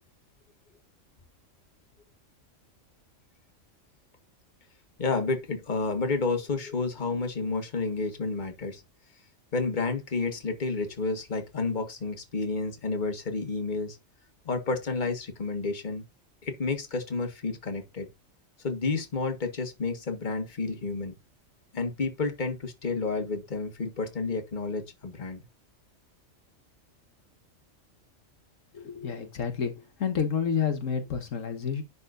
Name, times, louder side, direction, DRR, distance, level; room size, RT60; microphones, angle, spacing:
voice 1, 5.0-8.8 9.5-14.0 14.4-16.0 16.4-18.1 18.6-21.1 21.7-25.4, left 3 dB, 35° left, 1.6 m, -30 dB
voice 2, 28.7-31.8, left 7 dB, 75° left, 1.5 m, -29 dB
11.0 x 4.2 x 2.5 m
omnidirectional pair, 1.3 m